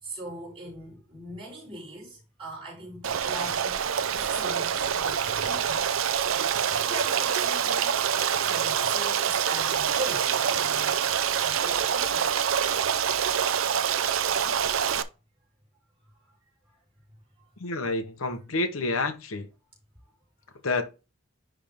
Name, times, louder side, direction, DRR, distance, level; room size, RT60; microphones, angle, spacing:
voice 1, 0.0-3.8 4.2-6.0 6.7-7.9 8.3-11.0 11.3-12.8 14.4-14.8, right 2 dB, 25° right, 4.2 m, -40 dB
Stream, 3.0-15.0, right 8 dB, 75° right, 0.6 m, -26 dB
voice 2, 17.6-19.5 20.6-20.8, left 2 dB, 85° left, 1.1 m, -28 dB
10.0 x 3.6 x 3.6 m
head